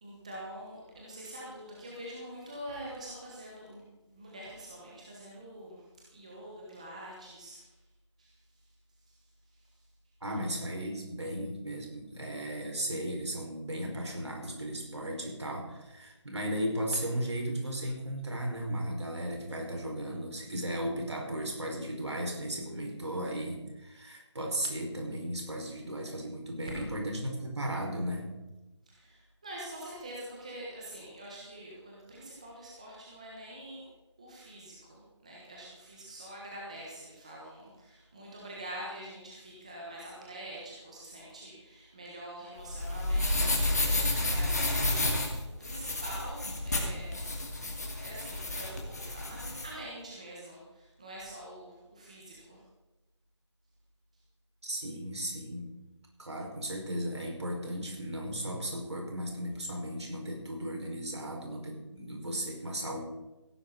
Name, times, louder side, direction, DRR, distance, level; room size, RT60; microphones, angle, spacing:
voice 1, 0.0-3.8 4.1-5.8 6.1-7.7 8.2-8.3 9.1-9.2 28.9-33.8 34.2-47.3 48.0-52.6, right 1 dB, 15° right, -4 dB, 1.3 m, -45 dB
voice 2, 10.2-28.3 54.6-55.7 56.2-63.0, right 1 dB, 65° right, 0 dB, 5.3 m, -35 dB
sound 1, 42.6-49.7, left 2 dB, 35° left, 2.4 m, -31 dB
17.0 x 11.5 x 4.1 m, 1.0 s
figure-of-eight pair, 180°, 15 cm